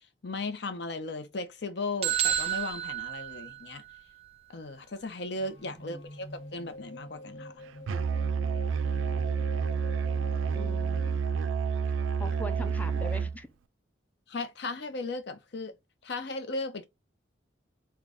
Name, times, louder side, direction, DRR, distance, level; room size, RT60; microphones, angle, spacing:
voice 1, 0.2-3.8 4.5-7.6 14.3-15.7 16.0-16.9, left 3 dB, 60° left, 0.7 m, -36 dB
sound 1, 2.0-4.0, right 11 dB, 30° right, 0.6 m, -30 dB
sound 2, 5.4-11.2, left 1 dB, 80° left, 1.0 m, -46 dB
voice 2, 5.7-6.1 10.5-11.4 12.2-13.5, left 1 dB, 10° left, 0.4 m, -42 dB
Musical instrument, 7.9-13.4, right 6 dB, 90° right, 0.3 m, -29 dB
3.7 x 2.2 x 3.4 m
head